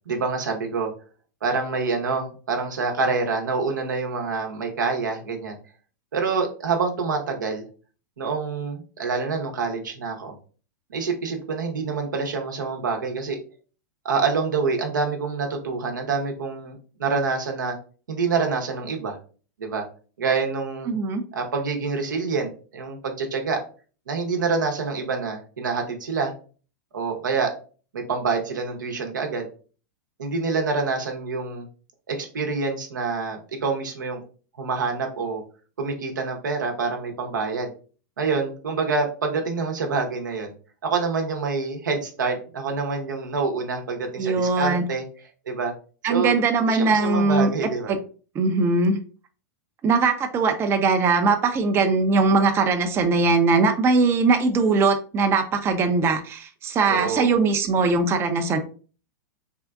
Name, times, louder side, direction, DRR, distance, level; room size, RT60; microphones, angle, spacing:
voice 1, 0.1-0.9 1.4-5.6 6.1-7.6 8.2-10.3 10.9-13.4 14.0-17.7 18.1-19.2 19.6-19.8 20.2-20.9 21.3-23.6 24.1-26.3 26.9-27.5 27.9-29.5 30.2-31.7 32.1-34.2 34.6-35.4 35.8-37.7 38.2-40.5 40.8-45.0 45.5-45.7 46.1-47.9 56.9-57.3, right 4 dB, 90° right, 3 dB, 0.8 m, -26 dB
voice 2, 20.9-21.2 44.2-44.8 46.0-47.5 47.9-48.0 48.3-49.0 49.8-58.6, right 4 dB, 25° right, 6 dB, 0.5 m, -20 dB
3.6 x 2.5 x 2.3 m, 0.38 s
hypercardioid pair, 115°, 10 cm